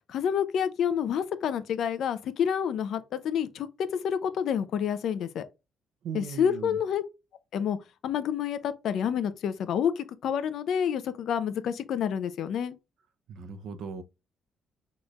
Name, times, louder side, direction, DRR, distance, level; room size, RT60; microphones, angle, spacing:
voice 1, 0.1-3.7 3.9-5.5 6.1-7.0 7.5-7.8 8.0-12.8, left 8 dB, 65° left, 0.6 m, -28 dB
voice 2, 6.0-6.8 13.3-14.0, right 6 dB, 65° right, 0.7 m, -38 dB
6.2 x 3.2 x 2.4 m
cardioid pair, 115°, 0 cm